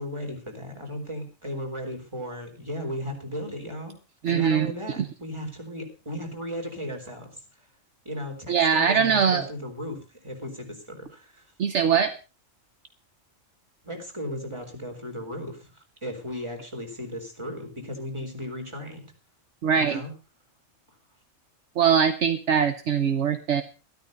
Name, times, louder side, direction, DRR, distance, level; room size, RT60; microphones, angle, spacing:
voice 1, 0.0-3.9 4.2-7.4 8.0-11.4 13.8-19.0 19.7-20.1, equal, 20° right, 3 dB, 3.9 m, -36 dB
voice 2, 4.2-4.7 5.0-5.1 8.5-9.4 11.6-12.1 19.6-20.0 21.8-23.6, right 7 dB, 65° right, 10 dB, 1.2 m, -22 dB
13.0 x 13.0 x 5.3 m, 0.34 s
omnidirectional pair, 1.3 m